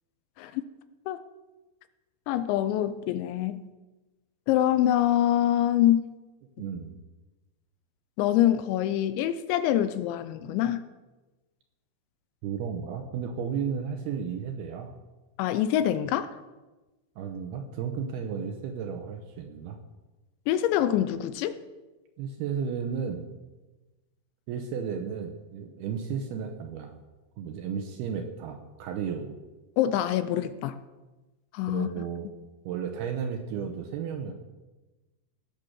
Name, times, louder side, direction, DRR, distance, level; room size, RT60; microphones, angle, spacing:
voice 1, 2.3-3.6 4.5-6.1 8.2-10.9 15.4-16.3 20.5-21.6 29.8-30.8 31.5-31.9, left 12 dB, 80° left, 12 dB, 2.9 m, -25 dB
voice 2, 6.6-6.9 12.4-15.0 17.2-19.8 22.2-23.2 24.5-27.0 27.4-29.4 31.7-32.3 32.7-34.3, right 7 dB, 75° right, 5 dB, 2.5 m, -33 dB
17.5 x 6.7 x 6.3 m, 1.2 s
omnidirectional pair, 5.3 m